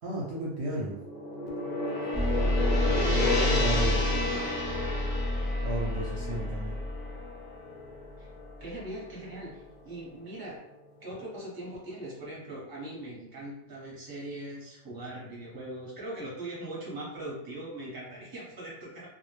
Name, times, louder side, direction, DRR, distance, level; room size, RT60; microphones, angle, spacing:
voice 1, 0.0-1.0 3.1-4.0 5.6-6.7, right 1 dB, 65° right, -5 dB, 0.7 m, -33 dB
Gong, 0.7-9.0, left 2 dB, 75° left, 0.4 m, -32 dB
sound 1, 2.1-7.4, left 1 dB, 20° left, 0.6 m, -29 dB
voice 2, 2.9-4.5 8.2-8.3 8.6-10.6 11.0-19.1, right 1 dB, 25° right, -5 dB, 0.6 m, -41 dB
2.2 x 2.1 x 3.1 m, 0.88 s
omnidirectional pair, 1.4 m